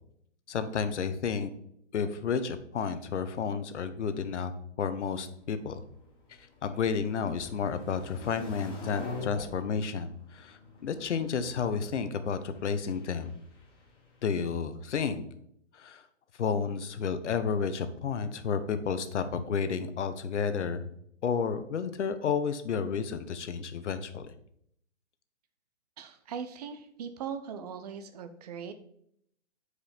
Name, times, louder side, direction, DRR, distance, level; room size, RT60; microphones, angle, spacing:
voice 1, 0.5-1.5 1.9-4.5 4.8-5.8 6.6-13.4 14.2-15.2 15.7-16.0 16.4-20.9 21.2-24.3, left 6 dB, 70° left, 11 dB, 0.9 m, -31 dB
sound 1, 5.2-14.3, left 3 dB, 15° left, 1.1 m, -46 dB
voice 2, 26.0-28.7, right 7 dB, 35° right, 9 dB, 0.6 m, -40 dB
8.1 x 4.8 x 3.4 m, 0.70 s
hypercardioid pair, 145°, 36 cm